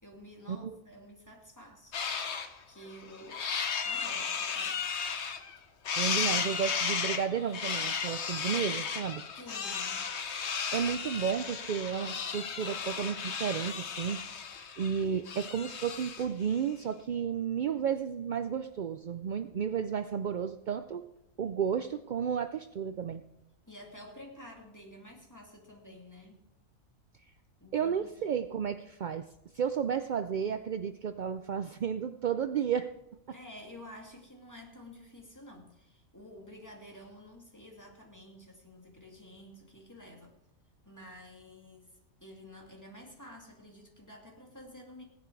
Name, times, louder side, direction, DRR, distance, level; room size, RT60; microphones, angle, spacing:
voice 1, 0.0-2.4 2.7-3.5 3.8-5.0 9.4-10.1 23.7-26.4 27.6-28.1 33.3-40.4 40.9-45.0, left 1 dB, 15° left, 0 dB, 2.3 m, -51 dB
sound 1, 1.9-2.5 2.9-5.6 5.8-16.3, left 6 dB, 55° left, 1.2 m, -34 dB
voice 2, 6.0-9.2 10.7-14.2 14.8-21.1 21.4-23.2 27.7-29.3 29.5-32.9, right 7 dB, 65° right, 9 dB, 0.4 m, -32 dB
17.0 x 10.5 x 4.6 m, 0.90 s
omnidirectional pair, 1.4 m